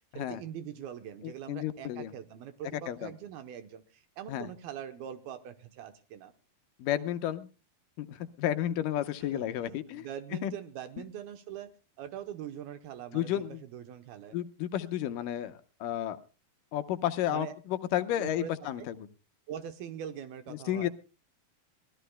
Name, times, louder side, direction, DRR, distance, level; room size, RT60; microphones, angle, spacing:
voice 1, 0.2-6.3 9.3-11.7 12.0-14.4 17.3-17.5 18.1-18.5 18.8-18.9 19.5-20.9, right 9 dB, 75° right, 9 dB, 2.7 m, -43 dB
voice 2, 1.2-2.1 2.9-3.1 4.3-4.5 6.8-7.5 8.0-10.1 10.4-10.5 13.1-13.6 14.3-16.2 16.7-18.9 20.7-20.9, left 11 dB, 75° left, 10 dB, 2.2 m, -32 dB
24.0 x 17.0 x 2.2 m, 0.33 s
omnidirectional pair, 4.5 m